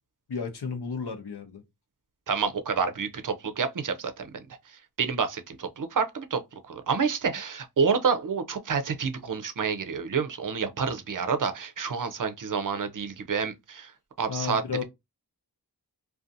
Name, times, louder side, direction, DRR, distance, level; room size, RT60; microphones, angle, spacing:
voice 1, 0.3-1.6 14.3-14.8, left 5 dB, 75° left, 0.7 m, -33 dB
voice 2, 2.3-4.1 5.0-6.4 6.7-13.9 14.2-14.6, right 5 dB, 55° right, 0.5 m, -28 dB
2.5 x 2.3 x 2.6 m
wide cardioid pair, 55°, 40 cm